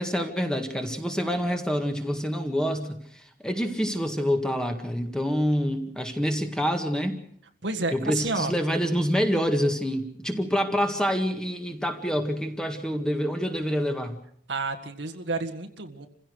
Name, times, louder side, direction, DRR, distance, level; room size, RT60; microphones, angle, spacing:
voice 1, 0.0-7.2 7.9-14.2, equal, 5° left, 5 dB, 1.8 m, -27 dB
voice 2, 7.6-8.5 14.5-16.1, right 3 dB, 75° right, 4 dB, 1.8 m, -30 dB
28.0 x 16.0 x 6.5 m, 0.65 s
head